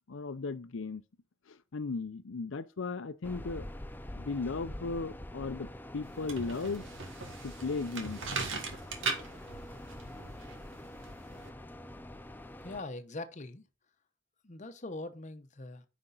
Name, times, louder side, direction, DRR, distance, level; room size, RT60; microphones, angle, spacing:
voice 1, 0.1-1.0 1.5-3.7 4.2-6.9 7.4-8.2, left 4 dB, 85° left, 0.6 m, -36 dB
sound 1, 3.2-12.8, left 1 dB, 10° left, 0.5 m, -46 dB
sound 2, 6.0-11.5, right 4 dB, 80° right, 2.1 m, -39 dB
voice 2, 12.6-13.7 14.4-15.8, left 2 dB, 40° left, 0.9 m, -42 dB
9.7 x 5.2 x 3.9 m
head